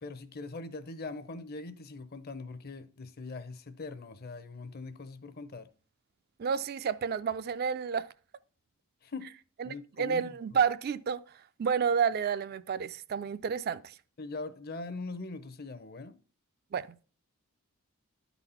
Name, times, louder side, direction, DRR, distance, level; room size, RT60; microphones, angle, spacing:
voice 1, 0.0-5.7 9.0-9.3 9.6-10.2 14.2-16.2, left 3 dB, 45° left, 0.6 m, -41 dB
voice 2, 6.4-8.1 9.6-11.2 11.6-13.9 16.7-17.0, right 6 dB, 45° right, 0.3 m, -30 dB
11.5 x 4.1 x 5.5 m
head